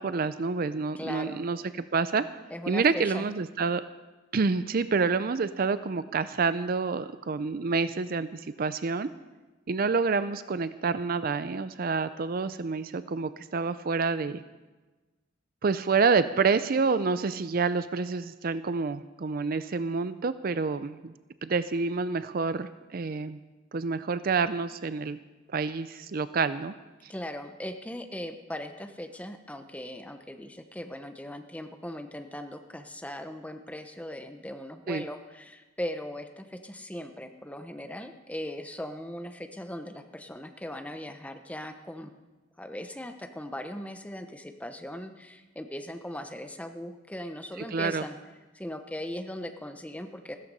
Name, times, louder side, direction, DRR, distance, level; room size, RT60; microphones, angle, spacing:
voice 1, 0.0-1.6 1.9-2.2 2.7-3.8 4.3-9.1 9.7-14.4 15.6-21.1 21.4-23.4 23.7-25.2 25.5-26.7 34.9-35.0 47.7-48.0, right 4 dB, 45° right, 13 dB, 0.5 m, -28 dB
voice 2, 1.0-1.5 2.5-3.2 27.1-42.1 42.6-48.2 48.5-50.4, left 1 dB, 5° left, 6 dB, 0.9 m, -39 dB
15.0 x 13.5 x 5.4 m, 1.2 s
head